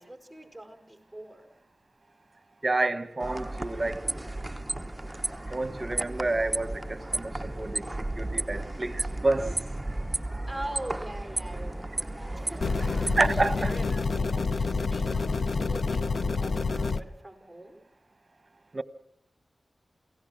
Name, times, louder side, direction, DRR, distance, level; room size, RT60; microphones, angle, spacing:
voice 1, 0.0-1.5 10.5-17.8, right 1 dB, 5° left, 5.4 m, -43 dB
voice 2, 2.6-4.0 5.5-9.6 13.2-13.7 18.7-18.8, right 2 dB, 40° right, 1.3 m, -29 dB
sound 1, 3.2-13.2, right 1 dB, 15° right, 1.0 m, -34 dB
sound 2, 12.6-17.0, left 4 dB, 70° left, 0.8 m, -28 dB
28.5 x 17.0 x 6.2 m
cardioid pair, 50°, 0 cm